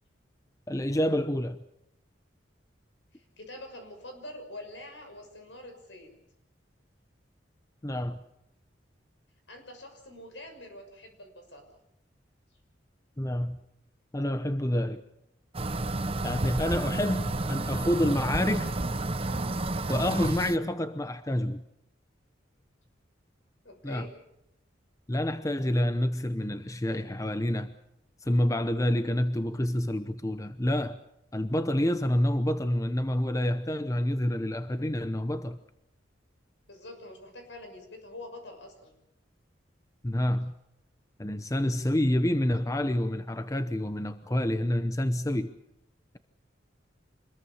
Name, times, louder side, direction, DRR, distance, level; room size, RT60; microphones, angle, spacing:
voice 1, 0.7-1.6 7.8-8.2 13.2-13.6 14.1-15.0 16.2-18.7 19.9-21.6 23.8-24.1 25.1-27.7 28.2-31.0 31.3-35.6 40.0-40.5 41.2-45.5, left 1 dB, 15° left, 0.8 m, -28 dB
voice 2, 3.1-6.1 9.5-11.6 23.6-24.1 36.7-38.9, left 1 dB, 75° left, 6.3 m, -45 dB
sound 1, 15.5-20.6, right 2 dB, 30° right, 0.9 m, -30 dB
25.5 x 20.5 x 7.1 m
head